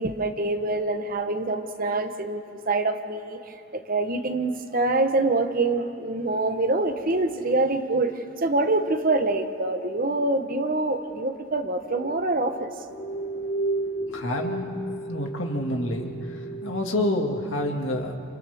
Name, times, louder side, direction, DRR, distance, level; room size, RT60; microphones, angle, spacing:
voice 1, 0.0-3.4 3.9-8.1 8.4-12.7, right 2 dB, 40° right, 7 dB, 1.1 m, -25 dB
sound 1, 11.9-17.6, right 2 dB, 35° left, 1.0 m, -33 dB
voice 2, 14.1-14.8 15.1-18.1, left 1 dB, 65° left, 2 dB, 2.2 m, -28 dB
29.5 x 29.0 x 3.6 m, 2.6 s
head